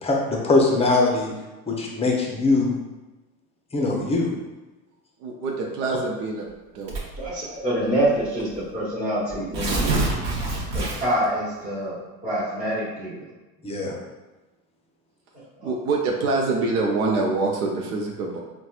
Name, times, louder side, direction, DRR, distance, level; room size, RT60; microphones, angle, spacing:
voice 1, 0.0-1.3 1.7-2.7 3.7-4.3 13.6-14.0, left 3 dB, 15° left, -1 dB, 0.6 m, -21 dB
voice 2, 5.2-6.5 6.7-6.9 15.6-18.4, right 3 dB, 85° right, -1 dB, 0.7 m, -25 dB
Tearing, 6.9-7.3 8.2-8.3 8.5-8.6 9.3-11.3, right 2 dB, 50° right, 0.9 m, -25 dB
voice 3, 7.2-9.9 10.7-11.9 12.2-13.2 15.6-15.7, right 1 dB, 20° right, -10 dB, 1.1 m, -26 dB
4.1 x 2.3 x 2.4 m, 1.1 s
hypercardioid pair, 95°, 44 cm